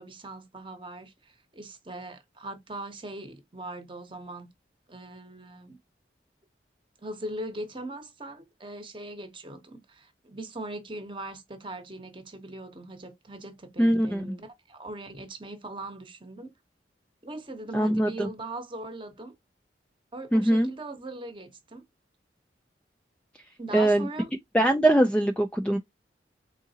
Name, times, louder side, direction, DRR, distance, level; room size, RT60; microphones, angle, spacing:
voice 1, 0.0-4.5 4.9-5.8 7.0-16.5 17.2-19.3 20.1-21.8 23.6-24.3, right 2 dB, 30° right, 0.9 m, -40 dB
voice 2, 13.8-14.3 17.7-18.3 20.3-20.7 23.7-24.1 24.5-25.8, right 1 dB, 5° left, 0.3 m, -22 dB
3.7 x 3.7 x 2.8 m
head